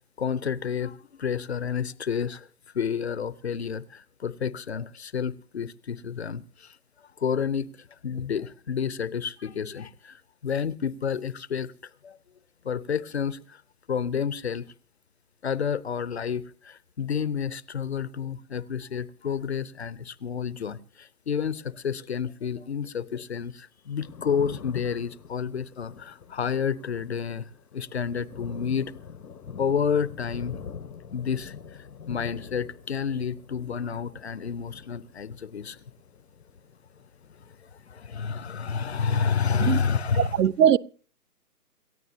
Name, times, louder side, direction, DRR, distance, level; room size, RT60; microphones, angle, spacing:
voice 1, 0.2-2.5 2.7-6.8 7.2-11.7 12.0-12.2 12.6-13.6 13.9-14.7 15.4-28.9 29.6-30.6 31.1-35.8 37.9-40.4, left 7 dB, 45° left, 0.7 m, -30 dB
Thunder, 23.8-38.2 38.5-39.7, left 6 dB, 85° left, 1.3 m, -45 dB
voice 2, 40.1-40.8, right 9 dB, 80° right, 0.7 m, -20 dB
28.0 x 14.0 x 2.8 m
hypercardioid pair, 165°, 47 cm